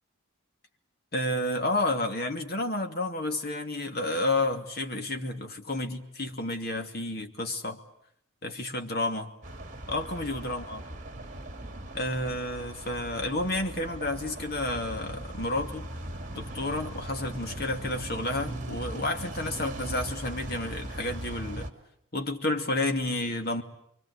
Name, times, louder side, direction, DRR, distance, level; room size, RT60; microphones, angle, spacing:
voice 1, 1.1-7.8 8.4-9.3 9.9-10.8 11.9-15.9 16.3-21.7 22.1-23.6, left 2 dB, 50° left, 4 dB, 2.6 m, -31 dB
sound 1, 9.4-21.7, right 1 dB, 35° right, 2.6 m, -39 dB
29.0 x 23.5 x 8.4 m, 0.71 s
head